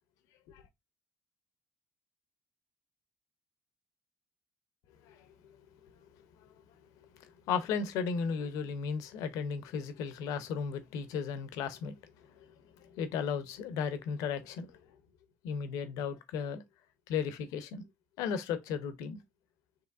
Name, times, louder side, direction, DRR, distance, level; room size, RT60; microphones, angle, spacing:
voice 1, 7.1-11.9 12.4-12.5 12.8-14.7 15.4-16.6 17.1-17.8 18.2-19.2, left 6 dB, 80° left, 0.7 m, -35 dB
5.5 x 3.1 x 2.5 m
supercardioid pair, 65°, 6 cm